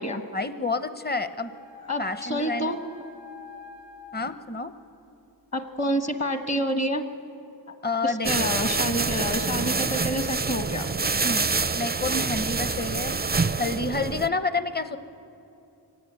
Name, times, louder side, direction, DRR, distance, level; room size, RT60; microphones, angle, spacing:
voice 1, 0.3-1.5 2.0-2.7 4.1-4.7 7.8-8.5 11.2-11.5 11.7-13.2 13.6-15.0, left 3 dB, 25° left, 11 dB, 0.8 m, -29 dB
sound 1, 1.4-4.2, left 5 dB, 85° left, 3.4 m, -45 dB
voice 2, 1.9-2.8 5.5-7.1 8.0-10.9, equal, 40° left, 7 dB, 1.5 m, -28 dB
sound 2, 8.2-14.3, right 4 dB, 25° right, 0.4 m, -26 dB
24.0 x 18.0 x 8.3 m, 2.8 s
wide cardioid pair, 50°, 42 cm